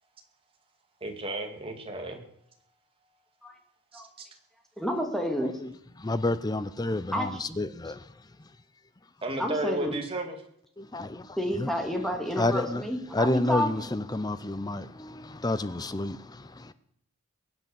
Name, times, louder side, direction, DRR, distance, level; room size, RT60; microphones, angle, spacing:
voice 1, 1.0-2.2 3.9-4.3 9.2-10.3, right 2 dB, 25° right, 2.3 m, -33 dB
voice 2, 4.8-5.6 7.1-7.6 9.4-10.0 11.4-13.7, equal, ahead, 2.2 m, -30 dB
voice 3, 5.4-5.7 6.0-8.1 10.8-11.7 12.4-12.8 13.1-16.7, left 2 dB, 20° left, 0.5 m, -30 dB
22.5 x 8.3 x 7.1 m
head